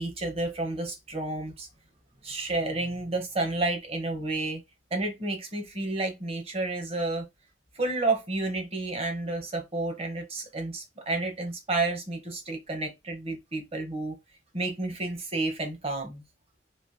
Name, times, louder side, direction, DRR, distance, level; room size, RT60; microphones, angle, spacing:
voice 1, 0.0-1.7 2.2-4.6 4.9-7.2 7.7-14.2 14.5-16.2, right 2 dB, 30° right, 0.9 m, -31 dB
3.2 x 2.6 x 2.6 m
head